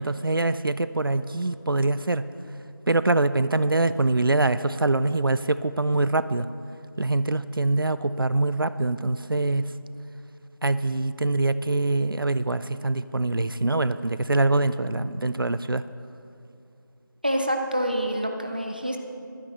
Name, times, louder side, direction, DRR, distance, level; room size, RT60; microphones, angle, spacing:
voice 1, 0.0-2.3 2.9-6.5 7.0-9.7 10.6-15.8, right 2 dB, 80° right, 14 dB, 0.5 m, -24 dB
voice 2, 17.2-19.0, equal, 25° right, 3 dB, 0.7 m, -26 dB
22.5 x 9.2 x 3.2 m, 2.5 s
figure-of-eight pair, 175°, 12 cm